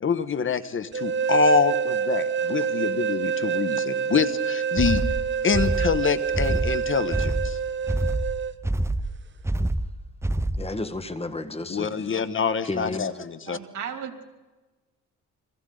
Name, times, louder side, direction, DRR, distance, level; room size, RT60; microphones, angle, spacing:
voice 1, 0.0-5.0 5.4-7.6 11.7-13.6, left 5 dB, 40° left, 13 dB, 1.3 m, -25 dB
sound 1, 0.9-8.5, right 6 dB, 40° right, 1.2 m, -27 dB
sound 2, 4.8-10.8, right 1 dB, 10° right, 0.7 m, -27 dB
voice 2, 10.6-12.1 12.6-13.1, left 2 dB, 20° left, 10 dB, 1.7 m, -32 dB
voice 3, 13.5-14.3, right 8 dB, 75° right, 6 dB, 2.9 m, -35 dB
30.0 x 23.0 x 4.0 m, 1.2 s
cardioid pair, 90°, 30 cm